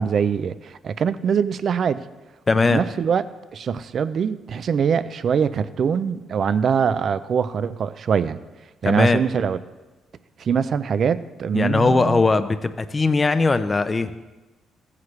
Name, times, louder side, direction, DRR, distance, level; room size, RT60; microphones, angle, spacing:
voice 1, 0.0-2.0 2.7-3.2 3.5-8.4 8.8-9.6 10.4-12.2, right 7 dB, 55° right, 14 dB, 0.4 m, -23 dB
voice 2, 2.5-2.8 8.8-9.2 11.5-14.1, left 3 dB, 25° left, 11 dB, 0.6 m, -19 dB
15.0 x 9.6 x 3.2 m, 1.1 s
cardioid pair, 90°, 0 cm